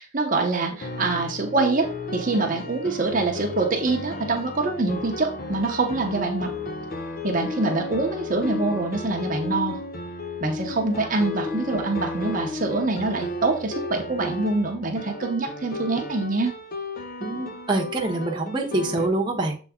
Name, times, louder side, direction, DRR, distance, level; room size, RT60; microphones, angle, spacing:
voice 1, 0.0-6.5 7.2-9.8 10.4-16.5, right 3 dB, 45° right, 2 dB, 0.8 m, -25 dB
sound 1, 0.8-19.1, left 2 dB, 45° left, 0.7 m, -33 dB
voice 2, 17.2-19.7, right 2 dB, 25° right, -1 dB, 0.9 m, -26 dB
7.1 x 3.9 x 3.6 m, 0.37 s
head